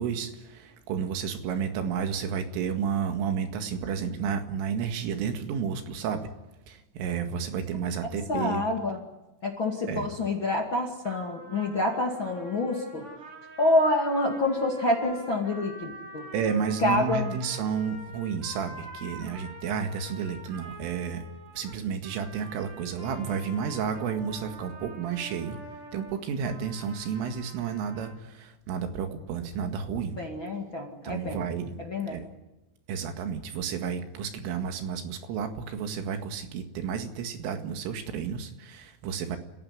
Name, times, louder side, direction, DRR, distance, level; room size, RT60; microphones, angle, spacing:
voice 1, 0.0-6.3 6.7-8.6 9.9-10.1 16.3-21.2 21.6-25.6 25.9-30.2 31.0-31.7 32.1-32.2 32.9-39.4, right 7 dB, 85° right, 6 dB, 4.5 m, -31 dB
voice 2, 8.3-9.0 9.4-13.1 13.6-16.3 16.8-17.3 30.2-31.5 31.8-32.2, left 2 dB, 40° left, 1 dB, 1.9 m, -27 dB
sound 1, 11.0-28.2, right 2 dB, 30° right, 3.4 m, -46 dB
29.5 x 16.0 x 9.8 m, 1.0 s
omnidirectional pair, 5.6 m